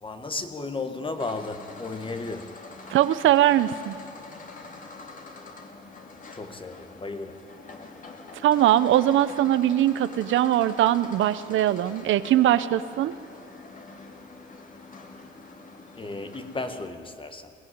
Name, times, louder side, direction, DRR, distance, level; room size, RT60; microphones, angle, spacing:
voice 1, 0.0-3.0 6.3-7.4 15.9-17.5, left 3 dB, 25° left, 8 dB, 1.4 m, -34 dB
sound 1, 1.1-16.9, left 3 dB, 40° left, 2.5 m, -45 dB
voice 2, 2.9-4.0 8.4-13.1, right 12 dB, 80° right, 14 dB, 0.8 m, -21 dB
21.5 x 15.5 x 9.6 m, 2.4 s
cardioid pair, 90°, 20 cm